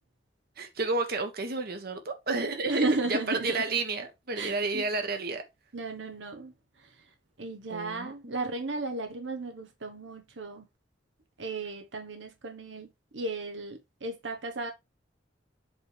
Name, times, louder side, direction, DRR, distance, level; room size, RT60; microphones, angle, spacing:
voice 1, 0.6-5.4 7.7-8.1, right 3 dB, 55° right, 1.3 m, -31 dB
voice 2, 2.7-3.6 4.4-4.8 5.7-6.5 6.8-6.9 7.4-10.7 11.4-14.7, right 3 dB, 80° right, 1.1 m, -34 dB
7.9 x 3.4 x 4.7 m
head